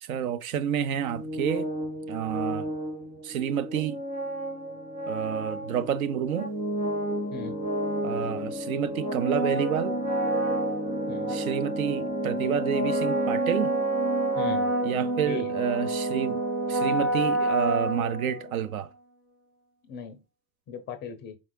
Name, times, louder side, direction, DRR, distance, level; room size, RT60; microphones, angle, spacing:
voice 1, 0.0-1.7 2.1-2.7 3.2-4.0 5.1-6.5 8.0-10.0 11.3-13.8 14.8-16.4 16.7-18.9, right 9 dB, 60° right, 0.6 m, -29 dB
sound 1, 1.0-18.7, right 1 dB, 75° right, 2.1 m, -29 dB
voice 2, 14.4-14.7 15.2-15.5 19.9-20.2 20.7-21.4, left 6 dB, 25° left, 0.5 m, -37 dB
4.7 x 3.6 x 2.2 m
figure-of-eight pair, 80°, 48 cm